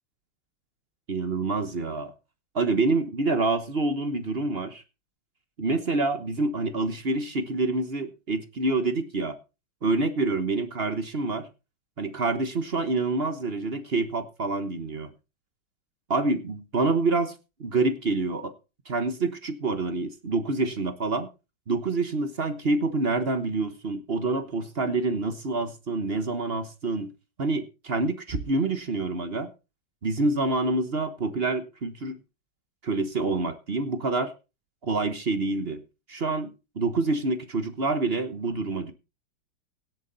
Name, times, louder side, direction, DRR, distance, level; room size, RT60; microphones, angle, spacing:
voice 1, 1.1-2.1 2.5-4.8 5.6-9.4 9.8-11.5 12.0-15.1 16.1-17.3 17.6-18.5 18.9-21.3 21.7-27.1 27.4-29.5 30.0-32.2 32.8-34.3 34.8-35.8 36.1-36.5 36.8-38.9, right 3 dB, 35° right, 10 dB, 1.1 m, -27 dB
17.0 x 8.5 x 4.0 m, 0.30 s
omnidirectional pair, 2.1 m